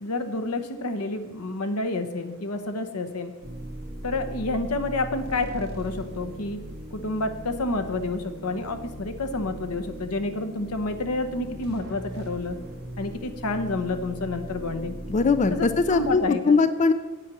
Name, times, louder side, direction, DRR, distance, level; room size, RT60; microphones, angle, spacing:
voice 1, 0.0-3.3 4.0-6.6 6.9-12.5 13.0-15.0 15.5-16.6, left 2 dB, 85° left, 8 dB, 1.0 m, -29 dB
sound 1, 3.4-16.2, right 1 dB, 45° right, 1.3 m, -39 dB
voice 2, 15.1-16.9, left 4 dB, 35° left, 11 dB, 0.4 m, -21 dB
8.7 x 8.0 x 6.1 m, 1.2 s
head